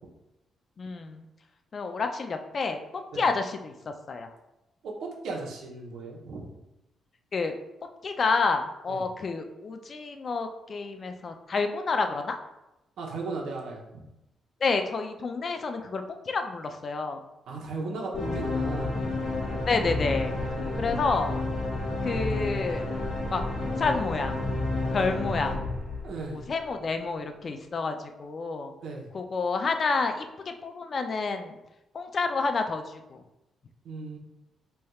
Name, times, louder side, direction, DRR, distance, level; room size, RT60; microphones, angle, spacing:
voice 1, 0.8-1.3 1.7-2.8 3.1-4.3 7.3-7.5 8.0-12.4 14.6-17.2 19.7-20.4 20.8-21.3 22.0-22.9 23.3-24.4 24.9-25.6 26.3-28.7 29.1-31.6 31.9-33.2, left 4 dB, 40° left, 6 dB, 0.4 m, -29 dB
voice 2, 4.8-6.5 8.9-9.0 13.0-14.1 17.5-19.2 20.5-21.2 25.0-25.2 26.0-26.4 28.8-29.1 33.8-34.2, right 3 dB, 80° right, -1 dB, 0.8 m, -37 dB
sound 1, 18.1-26.6, left 2 dB, 60° left, 1.4 m, -30 dB
4.2 x 3.3 x 2.3 m, 0.93 s
cardioid pair, 135°, 0 cm